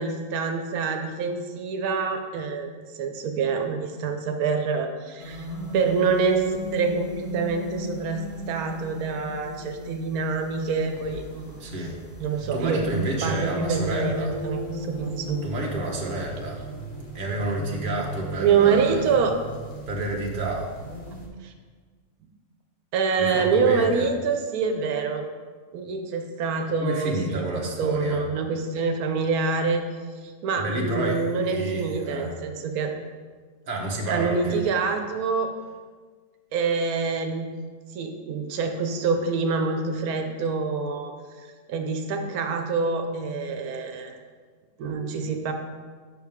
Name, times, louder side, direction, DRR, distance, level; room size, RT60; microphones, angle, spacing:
voice 1, 0.0-5.5 5.7-11.7 12.2-15.4 18.4-19.4 21.4-21.5 22.9-25.2 25.7-29.8 30.2-32.9 34.1-35.5 36.5-37.5 37.9-41.1 41.4-44.2 44.8-45.5, right 5 dB, 90° right, 5 dB, 1.2 m, -26 dB
sound 1, 5.2-21.3, equal, 40° left, 1.1 m, -37 dB
voice 2, 11.6-12.0 12.5-14.3 15.4-16.6 17.1-19.2 19.9-20.7 23.2-24.1 26.8-28.2 30.6-32.3 33.7-34.6, right 2 dB, 40° right, -2 dB, 1.1 m, -30 dB
6.5 x 6.3 x 3.5 m, 1.5 s
omnidirectional pair, 1.5 m